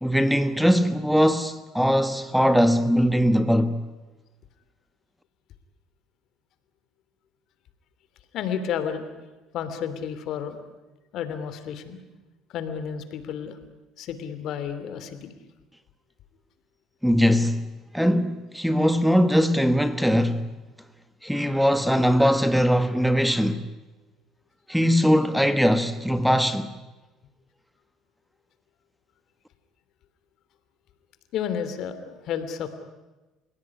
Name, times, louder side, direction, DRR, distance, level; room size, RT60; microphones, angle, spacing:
voice 1, 0.0-3.8 17.0-20.5 21.2-23.6 24.7-26.7, equal, ahead, 1.3 m, -21 dB
voice 2, 8.3-9.0 9.5-10.6 11.1-12.0 12.5-13.6 14.0-15.3 31.3-32.7, left 8 dB, 65° left, 3.1 m, -31 dB
30.0 x 17.0 x 9.9 m
supercardioid pair, 95°, 0 cm